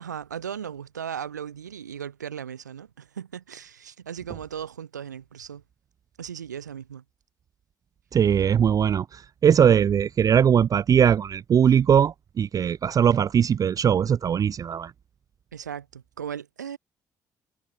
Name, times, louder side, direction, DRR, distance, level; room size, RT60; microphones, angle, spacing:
voice 1, 0.0-5.6 6.2-7.0 15.5-16.8, right 8 dB, 90° right, 3.8 m, -37 dB
voice 2, 8.1-14.9, right 8 dB, 40° right, 0.4 m, -20 dB
hypercardioid pair, 50°, 9 cm